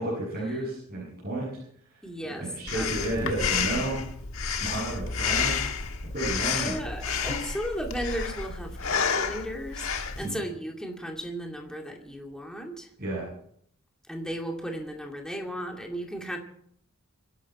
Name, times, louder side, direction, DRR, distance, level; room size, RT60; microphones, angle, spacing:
voice 1, 0.0-1.5 2.4-4.1 4.4-5.6 6.1-6.8 10.2-10.4 13.0-13.3, right 2 dB, 45° right, -7 dB, 7.9 m, -31 dB
voice 2, 2.0-3.0 6.5-12.9 14.1-16.4, equal, 5° left, 1 dB, 2.5 m, -35 dB
Breathing, 2.7-10.3, left 6 dB, 70° left, 1.5 m, -30 dB
25.5 x 11.0 x 4.4 m, 0.66 s
head